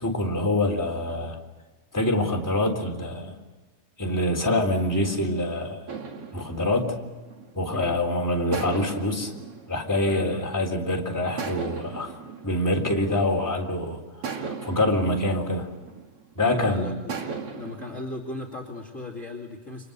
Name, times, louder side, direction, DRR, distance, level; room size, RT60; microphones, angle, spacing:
voice 1, 0.0-1.4 1.9-3.3 4.0-5.8 6.3-7.0 7.5-9.3 9.7-12.2 12.4-14.0 14.3-15.7 16.3-16.9, left 1 dB, 5° left, 0 dB, 3.3 m, -25 dB
sound 1, 5.9-7.9 8.5-10.8 11.4-13.6 14.2-16.4 17.1-18.0, right 5 dB, 50° right, 2.8 m, -38 dB
voice 2, 10.0-10.5 16.4-17.0 17.5-19.9, left 2 dB, 25° left, 1 dB, 2.7 m, -37 dB
30.0 x 26.0 x 6.8 m, 1.3 s
omnidirectional pair, 3.7 m